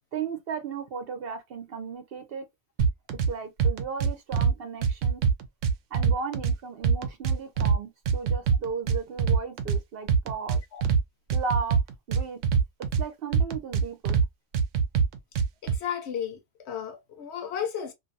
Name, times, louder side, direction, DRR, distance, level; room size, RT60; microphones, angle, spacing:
voice 1, 0.1-2.5 3.3-5.2 5.9-10.6 11.3-11.8 12.1-12.4 12.8-14.2, right 5 dB, 60° right, 0.8 m, -35 dB
sound 1, 2.8-3.3 3.6-4.5 4.8-6.5 6.8-7.8 8.1-9.8 10.1-11.0 11.3-13.0 13.3-14.3 14.5-15.8, right 6 dB, 90° right, 1.0 m, -23 dB
voice 2, 15.6-16.4 16.6-17.9, left 8 dB, 70° left, 0.9 m, -33 dB
2.6 x 2.5 x 2.5 m
omnidirectional pair, 1.2 m